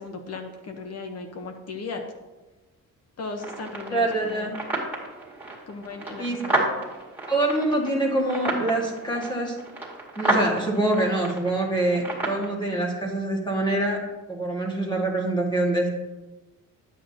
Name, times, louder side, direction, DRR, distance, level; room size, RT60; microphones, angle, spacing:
voice 1, 0.0-2.0 3.2-4.5 5.7-6.8, left 4 dB, 50° left, 5 dB, 1.0 m, -37 dB
sound 1, 3.4-12.4, right 2 dB, 5° right, 2.1 m, -31 dB
voice 2, 3.9-4.5 6.2-6.4 7.3-9.6 10.2-14.0 14.3-15.9, right 2 dB, 15° left, -1 dB, 1.8 m, -25 dB
9.7 x 8.4 x 2.8 m, 1.1 s
cardioid pair, 120°, 33 cm